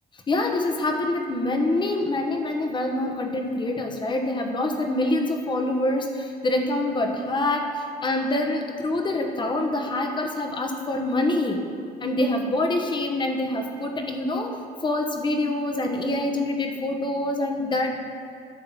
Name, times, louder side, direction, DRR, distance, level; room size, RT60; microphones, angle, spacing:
voice 1, 0.3-11.7 12.0-18.0, left 2 dB, 25° left, 3 dB, 1.1 m, -25 dB
10.5 x 3.8 x 7.3 m, 2.4 s
cardioid pair, 110°, 17 cm